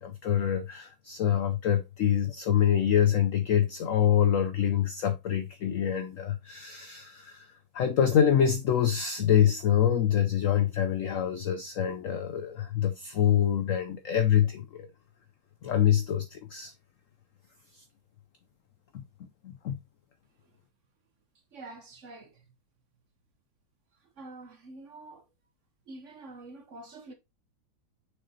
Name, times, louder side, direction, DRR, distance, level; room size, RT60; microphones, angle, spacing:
voice 1, 0.0-14.9 15.6-16.7 17.7-17.8 18.9-19.0 19.4-19.8, left 9 dB, 85° left, 0.7 m, -26 dB
voice 2, 21.5-22.4 24.2-25.2 25.9-27.1, right 2 dB, 50° right, 0.9 m, -46 dB
6.4 x 5.9 x 2.7 m
omnidirectional pair, 2.0 m